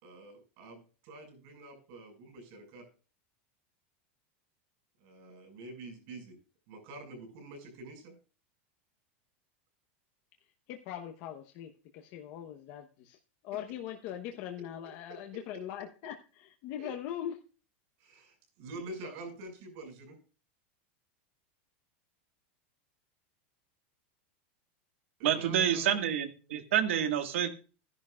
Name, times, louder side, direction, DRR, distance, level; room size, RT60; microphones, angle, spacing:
voice 1, 0.0-2.8 5.0-6.4 6.7-8.1 15.1-15.2 16.8-16.9 18.0-20.2 25.2-26.0, right 2 dB, 50° right, 4 dB, 5.9 m, -47 dB
voice 2, 10.7-13.2 13.4-17.3, left 10 dB, 45° left, 4 dB, 1.0 m, -41 dB
voice 3, 25.2-27.5, right 9 dB, 85° right, 7 dB, 1.7 m, -28 dB
14.5 x 11.0 x 2.4 m, 0.36 s
supercardioid pair, 160°, 7 cm